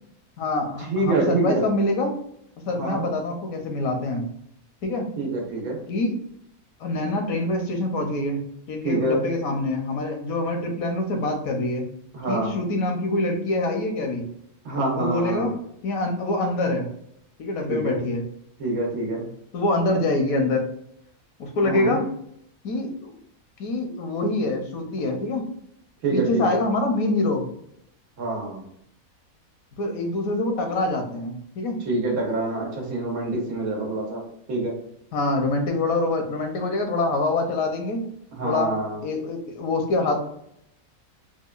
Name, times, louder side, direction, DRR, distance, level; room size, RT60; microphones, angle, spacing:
voice 1, 0.4-2.2 2.7-4.3 4.8-5.1 5.9-6.1 6.8-8.4 8.7-11.9 12.3-14.3 14.9-15.6 15.8-16.9 17.4-18.3 19.5-20.7 21.4-22.0 22.6-23.1 23.6-25.4 26.1-27.5 29.8-31.8 35.1-38.1 38.4-38.7 39.0-40.2, left 2 dB, 85° left, 4 dB, 1.2 m, -25 dB
voice 2, 0.9-1.7 2.8-3.0 5.2-5.8 8.8-9.2 12.1-12.5 14.6-15.5 17.7-17.9 18.6-19.2 21.6-22.0 26.0-26.6 28.2-28.6 31.9-34.2 34.5-34.7 38.3-39.0, right 2 dB, 90° right, -1 dB, 1.6 m, -26 dB
4.7 x 2.2 x 2.4 m, 0.72 s
omnidirectional pair, 1.5 m